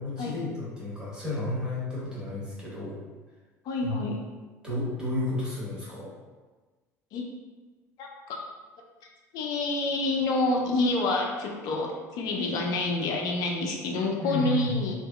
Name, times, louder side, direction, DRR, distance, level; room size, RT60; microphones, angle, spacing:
voice 1, 0.0-3.0 3.8-4.0 4.6-6.1 14.2-14.8, left 2 dB, 10° right, -8 dB, 1.3 m, -32 dB
voice 2, 3.7-4.2 7.1-7.2 8.0-8.4 9.3-15.0, left 2 dB, 50° left, 0 dB, 0.4 m, -28 dB
2.6 x 2.4 x 2.2 m, 1.3 s
figure-of-eight pair, 65°, 9 cm